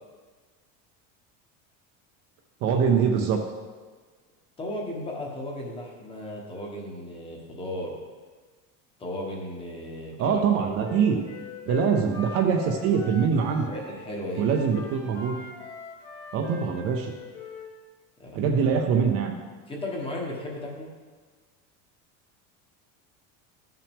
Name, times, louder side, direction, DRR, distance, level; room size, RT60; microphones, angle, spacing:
voice 1, 2.6-3.4 10.2-11.2 11.7-13.7 14.4-15.4 16.3-17.1 18.3-19.3, right 6 dB, 40° right, 3 dB, 0.6 m, -23 dB
voice 2, 4.6-8.0 9.0-10.4 13.7-14.5 18.2-18.5 19.7-20.9, left 1 dB, 15° left, -1 dB, 1.1 m, -35 dB
Wind instrument woodwind instrument, 10.8-14.0 14.3-17.7, left 5 dB, 60° left, 1.6 m, -41 dB
12.0 x 5.7 x 3.5 m, 1.4 s
cardioid pair, 175°, 37 cm